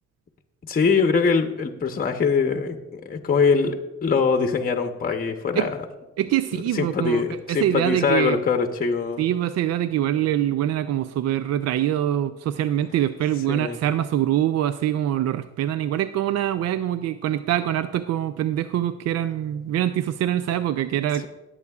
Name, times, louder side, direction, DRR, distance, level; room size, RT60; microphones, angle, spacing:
voice 1, 0.7-5.8 6.5-9.3 13.5-13.8, left 5 dB, 30° left, 6 dB, 0.8 m, -23 dB
voice 2, 6.2-8.4 9.2-21.3, right 11 dB, 60° right, 12 dB, 0.4 m, -24 dB
17.5 x 8.4 x 2.4 m, 1.1 s
cardioid pair, 90°, 30 cm